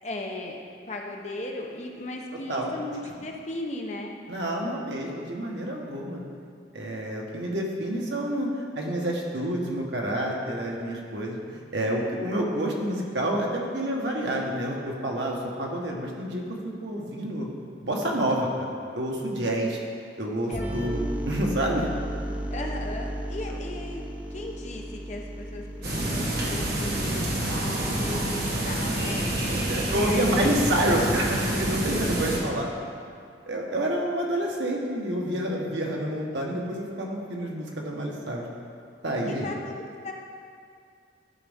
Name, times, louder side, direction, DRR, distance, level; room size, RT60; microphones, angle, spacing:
voice 1, 0.0-4.1 20.5-20.8 22.5-24.0 24.3-29.3 29.8-31.1 31.3-31.5 39.4-40.1, left 2 dB, 35° left, 1 dB, 0.8 m, -37 dB
voice 2, 4.3-6.2 6.7-16.4 16.8-17.5 17.8-18.7 18.9-19.8 20.2-21.9 29.5-32.7 33.4-38.4 39.0-39.5, right 1 dB, 75° right, -1 dB, 1.3 m, -28 dB
sound 1, 20.5-28.1, right 1 dB, 10° right, 0.4 m, -35 dB
sound 2, 25.8-32.4, right 1 dB, 55° right, 1.3 m, -27 dB
12.5 x 5.2 x 3.6 m, 2.3 s
head